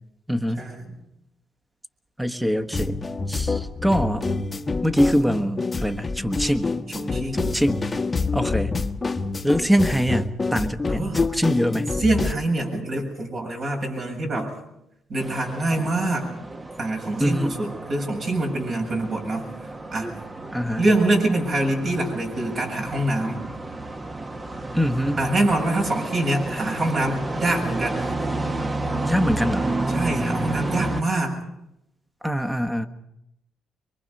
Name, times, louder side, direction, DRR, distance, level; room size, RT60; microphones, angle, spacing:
voice 1, 0.3-0.7 2.2-4.3 4.8-6.8 7.3-7.9 8.3-8.8 9.4-12.0 17.2-17.6 20.5-20.9 24.7-25.2 29.0-29.7 32.2-32.9, equal, 5° right, 9 dB, 1.4 m, -23 dB
sound 1, 2.7-12.3, left 3 dB, 25° left, 1.1 m, -27 dB
voice 2, 6.9-7.5 10.9-11.2 12.0-14.5 15.1-16.3 16.8-19.5 19.9-20.2 20.8-23.4 25.2-28.1 29.9-31.3, right 2 dB, 50° right, 1 dB, 7.2 m, -25 dB
sound 2, 15.2-31.0, right 2 dB, 25° right, 1.3 m, -31 dB
24.0 x 23.5 x 5.5 m, 0.84 s
cardioid pair, 90°, 0 cm